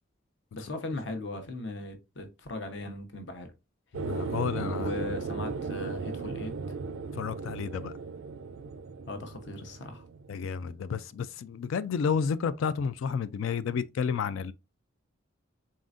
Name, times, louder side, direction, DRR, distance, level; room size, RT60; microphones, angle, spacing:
voice 1, 0.5-3.5 4.8-6.5 9.1-10.0, left 2 dB, 60° left, 0.8 m, -38 dB
voice 2, 3.9-4.9 7.2-7.9 10.3-14.5, left 6 dB, 80° left, 0.3 m, -31 dB
sound 1, 3.9-10.8, right 4 dB, 80° right, 0.4 m, -36 dB
4.2 x 3.7 x 2.5 m
head